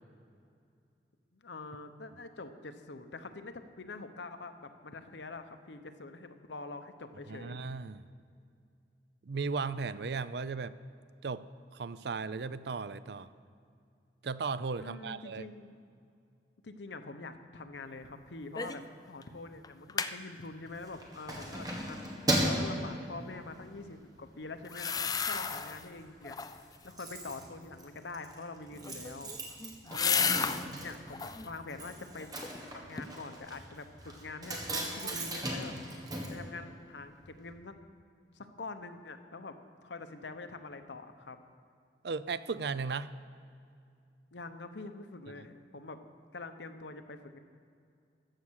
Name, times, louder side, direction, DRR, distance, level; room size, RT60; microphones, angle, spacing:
voice 1, 1.3-7.7 14.8-15.7 16.6-29.3 29.8-30.3 30.8-32.3 32.7-35.7 36.3-37.7 38.3-39.6 39.8-41.4 44.3-46.0 46.3-47.4, left 3 dB, 80° left, 8 dB, 0.9 m, -45 dB
voice 2, 7.3-8.0 9.2-10.7 11.2-11.4 11.7-13.3 14.2-15.5 29.9-30.0 30.7-30.9 35.0-35.1 42.0-43.1, right 4 dB, 65° right, 15 dB, 0.5 m, -36 dB
sound 1, 18.6-18.9 19.2-19.3 19.6-20.1 24.6-25.9 26.2-26.8 28.7-30.7 31.1-31.5 32.0-32.6 33.0-33.1, left 6 dB, 20° left, 0.4 m, -33 dB
Keys jangling, 20.7-23.8 24.2-24.4 24.8-25.5 25.8-25.9 26.1-26.2 26.4-37.2 37.5-37.6, right 1 dB, 20° right, 1.7 m, -37 dB
14.5 x 8.4 x 6.4 m, 2.4 s
head